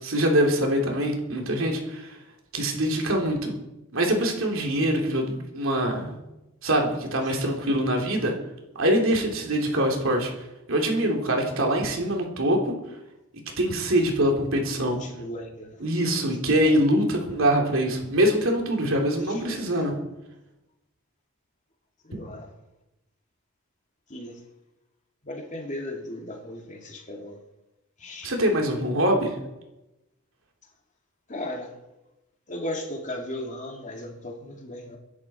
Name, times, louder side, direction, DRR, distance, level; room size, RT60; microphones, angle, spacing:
voice 1, 0.0-2.2 2.5-3.6 3.9-6.1 6.6-8.3 8.7-10.3 10.7-12.7 13.3-15.0 15.8-19.9 22.1-22.2 28.2-29.4, right 1 dB, 65° right, 1 dB, 3.2 m, -24 dB
voice 2, 14.8-15.8 16.6-16.9 18.8-19.7 22.0-22.5 24.1-24.4 25.2-27.4 28.0-28.3 31.3-31.7 32.5-35.0, left 1 dB, 35° left, 1 dB, 2.5 m, -37 dB
24.5 x 10.5 x 4.4 m, 0.96 s
head